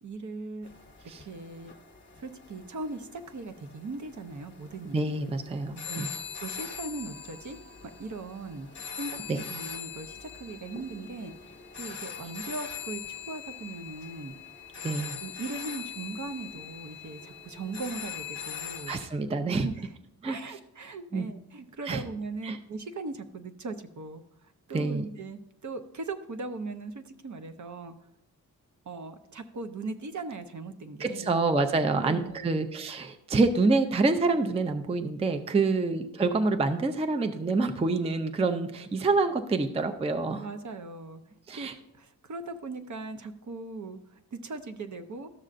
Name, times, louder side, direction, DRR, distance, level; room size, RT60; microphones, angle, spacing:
voice 1, 0.0-0.7 1.3-1.7 2.2-5.2 5.9-6.1 6.4-7.6 8.0-8.7 9.0-14.3 15.2-18.9 19.6-19.7 20.2-24.2 24.7-27.9 28.9-31.4 31.9-32.6 35.6-35.9 40.4-41.2 41.5-41.7 42.0-44.0 44.3-45.3, right 3 dB, 50° right, 8 dB, 0.7 m, -39 dB
sound 1, 0.6-19.1, left 7 dB, 30° left, 0.9 m, -42 dB
voice 2, 4.9-6.2 9.3-9.4 14.8-15.2 18.9-19.7 20.2-20.6 21.1-21.3 21.8-22.0 22.4-22.6 24.7-25.1 31.0-40.5 41.5-41.8, right 3 dB, 15° right, 8 dB, 0.4 m, -27 dB
13.0 x 6.4 x 2.5 m, 0.82 s
wide cardioid pair, 100°, 37 cm